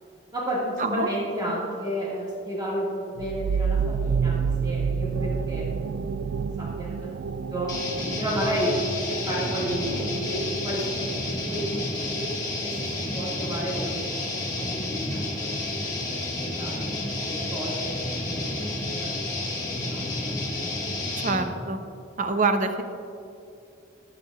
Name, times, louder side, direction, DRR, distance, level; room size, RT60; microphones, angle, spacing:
voice 1, 0.3-6.1 6.6-7.1 7.5-7.7 8.2-12.3 12.6-15.6 15.9-18.5 19.0-19.3 19.8-20.1, equal, 20° right, -6 dB, 1.8 m, -32 dB
sound 1, 3.2-12.5, right 6 dB, 85° right, 0.3 m, -30 dB
sound 2, 7.7-21.4, left 2 dB, 20° left, 1.6 m, -30 dB
voice 2, 21.2-21.8 22.2-22.8, right 3 dB, 45° right, 7 dB, 0.6 m, -25 dB
14.5 x 9.2 x 2.3 m, 2.6 s
head